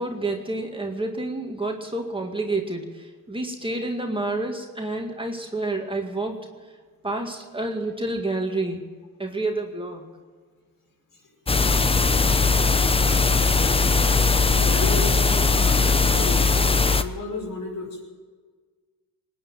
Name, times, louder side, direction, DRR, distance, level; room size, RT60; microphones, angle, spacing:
voice 1, 0.0-6.4 7.0-8.8 9.2-10.0, right 2 dB, 15° right, 2 dB, 2.1 m, -29 dB
sound 1, 11.5-17.0, left 4 dB, 15° left, 0.8 m, -19 dB
voice 2, 14.4-16.6 16.9-18.0, left 3 dB, 55° left, 1 dB, 5.5 m, -34 dB
19.5 x 9.7 x 7.4 m, 1.5 s
supercardioid pair, 75°, 39 cm